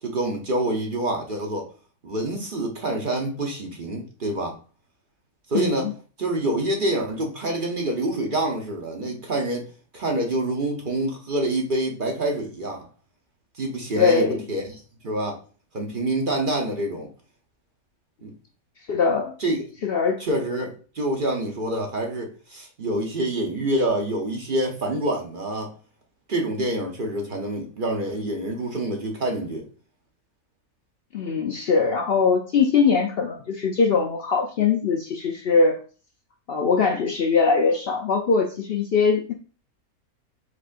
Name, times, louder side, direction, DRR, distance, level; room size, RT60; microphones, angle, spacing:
voice 1, 0.0-1.7 2.0-4.5 5.5-5.9 6.2-9.7 9.9-12.9 13.6-14.7 15.0-15.4 15.7-17.1 18.2-18.3 19.4-19.6 20.2-25.7 26.3-29.7, right 1 dB, 40° right, 1 dB, 0.9 m, -26 dB
voice 2, 5.5-5.9 14.0-14.4 18.9-19.3 19.8-20.2 31.1-35.8 36.5-39.3, left 5 dB, 65° left, 3 dB, 0.6 m, -21 dB
5.0 x 4.2 x 2.5 m, 0.37 s
omnidirectional pair, 1.6 m